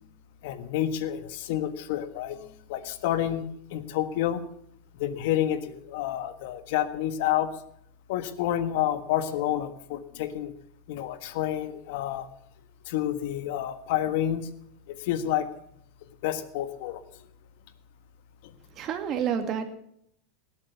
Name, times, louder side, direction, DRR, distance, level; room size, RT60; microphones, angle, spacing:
voice 1, 0.4-2.4 2.7-4.4 5.0-7.5 8.1-10.5 10.9-12.3 12.8-14.5 14.9-15.5 16.2-17.3, left 11 dB, 70° left, 11 dB, 1.5 m, -29 dB
voice 2, 18.7-19.7, right 8 dB, 40° right, 6 dB, 2.3 m, -29 dB
18.5 x 8.6 x 6.9 m, 0.70 s
supercardioid pair, 130°, 0 cm